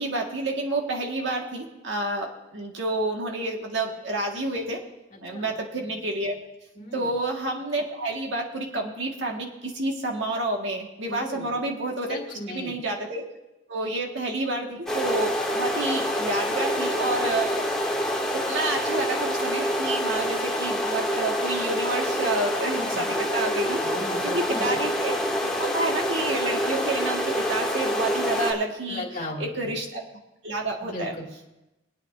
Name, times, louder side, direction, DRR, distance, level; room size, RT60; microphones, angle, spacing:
voice 1, 0.0-4.8 5.2-6.4 6.9-12.2 12.5-13.2 13.7-17.6 18.3-23.8 24.2-25.2 25.4-30.0 30.4-31.1, right 2 dB, 65° right, 0 dB, 1.9 m, -29 dB
voice 2, 5.1-5.5 6.7-7.1 11.1-11.6 12.1-12.8 22.9-23.0 23.8-24.7 28.9-29.7 30.8-31.3, left 1 dB, 40° left, -2 dB, 2.4 m, -36 dB
sound 1, 14.9-28.5, equal, 5° left, 1.4 m, -27 dB
23.5 x 9.0 x 2.7 m, 0.98 s
head